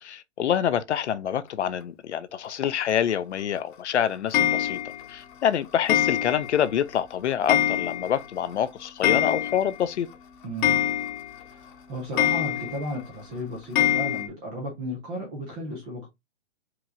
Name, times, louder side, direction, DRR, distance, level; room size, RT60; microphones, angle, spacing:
voice 1, 0.0-4.8 5.1-10.1, left 9 dB, 70° left, 0.6 m, -26 dB
Clock, 4.3-5.1 5.9-6.6 6.9-7.0 7.5-8.3 8.5-8.6 8.8-9.8 10.1-10.2 10.6-11.4 12.2-12.9 13.8-14.3, left 11 dB, 45° left, 0.9 m, -24 dB
voice 2, 10.4-10.8 11.5-16.1, equal, 10° right, 0.3 m, -34 dB
4.6 x 3.0 x 2.6 m
hypercardioid pair, 130°, 36 cm